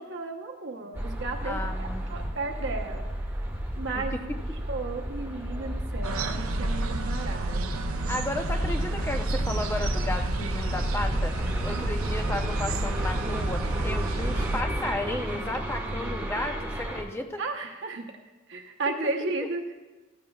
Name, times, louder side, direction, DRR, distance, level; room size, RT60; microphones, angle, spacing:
voice 1, 0.0-3.0 3.8-4.3 4.7-7.8 11.7-11.9 17.4-18.1 18.5-19.7, right 3 dB, 55° right, 2 dB, 1.0 m, -34 dB
sound 1, 0.9-17.0, right 1 dB, 10° right, 1.4 m, -33 dB
voice 2, 1.4-2.3 4.0-4.2 8.1-17.4 18.9-19.1, left 1 dB, 10° left, 4 dB, 0.7 m, -34 dB
sound 2, 6.0-14.6, right 2 dB, 80° right, 0.7 m, -31 dB
sound 3, 8.6-14.9, equal, 35° left, 3.0 m, -34 dB
15.5 x 15.0 x 2.4 m, 1.2 s
head